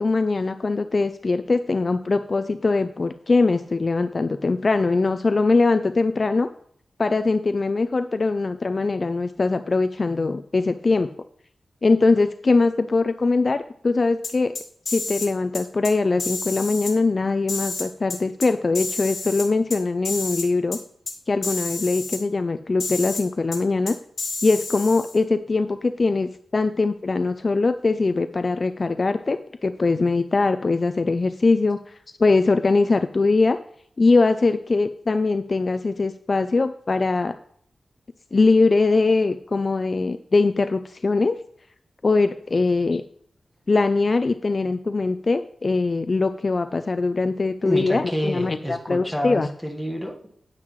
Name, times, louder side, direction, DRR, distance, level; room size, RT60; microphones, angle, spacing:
voice 1, 0.0-6.5 7.0-11.1 11.8-14.5 14.9-20.8 21.3-24.0 24.4-33.6 34.0-37.3 38.3-41.4 42.0-43.0 43.7-49.5, left 3 dB, 35° left, 10 dB, 0.3 m, -22 dB
sound 1, 14.2-15.3 15.5-15.9 16.2-16.9 17.5-18.5 18.7-19.8 20.0-20.5 20.7-20.8 21.1-21.2 21.4-22.2 22.8-23.2 23.5-23.6 23.9-25.2, left 3 dB, 55° left, 2.0 m, -30 dB
voice 2, 47.6-50.3, equal, ahead, 1 dB, 1.3 m, -28 dB
9.6 x 9.0 x 3.1 m, 0.66 s
wide cardioid pair, 155°, 0 cm